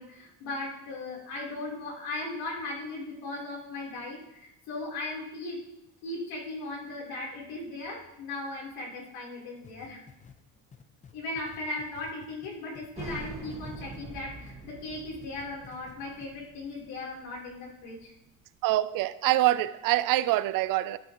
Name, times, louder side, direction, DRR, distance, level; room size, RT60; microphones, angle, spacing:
voice 1, 0.0-5.6 6.0-10.0 11.1-18.1, left 2 dB, 75° left, 3.7 m, -37 dB
sound 1, 9.6-14.6 14.9-15.9 16.2-16.3, left 7 dB, 20° left, 0.6 m, -52 dB
sound 2, 12.9-18.3, right 4 dB, 15° right, 1.7 m, -45 dB
voice 2, 18.6-21.0, right 15 dB, 60° right, 0.5 m, -25 dB
13.0 x 9.4 x 3.0 m
cardioid pair, 160°, 37 cm